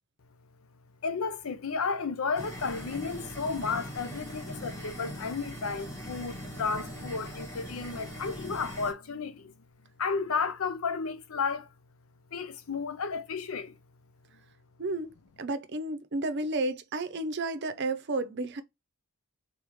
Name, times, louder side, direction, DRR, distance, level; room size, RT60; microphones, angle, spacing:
voice 1, 1.0-9.5 10.0-11.7 12.3-13.8, left 5 dB, 75° left, 0.6 m, -33 dB
sound 1, 2.4-8.9, equal, 15° left, 1.2 m, -41 dB
voice 2, 14.8-15.1 15.4-18.6, right 2 dB, 55° right, 0.6 m, -32 dB
3.9 x 3.5 x 3.1 m
head